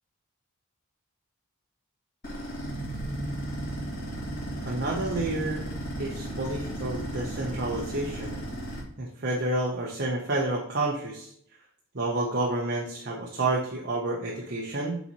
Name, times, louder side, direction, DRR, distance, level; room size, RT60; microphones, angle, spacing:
sound 1, 2.2-8.8, right 1 dB, 40° left, 2.1 m, -34 dB
voice 1, 4.6-5.6 6.0-8.4 9.0-11.3 11.9-15.0, right 2 dB, 45° right, -2 dB, 0.8 m, -29 dB
7.9 x 4.1 x 3.0 m, 0.66 s
head